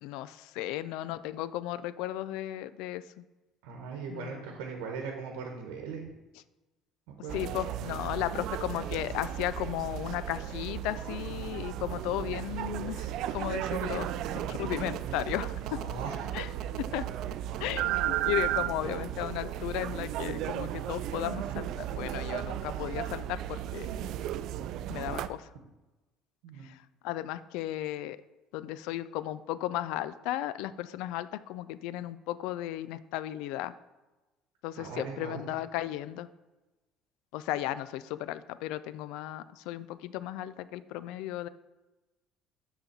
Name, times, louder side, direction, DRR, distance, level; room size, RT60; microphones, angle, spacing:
voice 1, 0.0-3.0 4.1-4.5 7.3-15.6 16.3-16.5 16.9-17.0 17.6-21.7 22.0-24.1 24.9-25.4 26.6-26.7 27.0-28.2 28.5-33.7 34.6-36.3 37.3-41.5, left 14 dB, 80° left, 15 dB, 0.3 m, -35 dB
voice 2, 3.6-6.0 7.1-7.5 15.6-16.5 26.4-26.7 34.8-35.4, right 5 dB, 90° right, 2 dB, 1.0 m, -39 dB
sound 1, 7.3-25.3, right 12 dB, 65° right, 0.3 m, -35 dB
6.9 x 4.0 x 5.9 m, 1.1 s
cardioid pair, 115°, 0 cm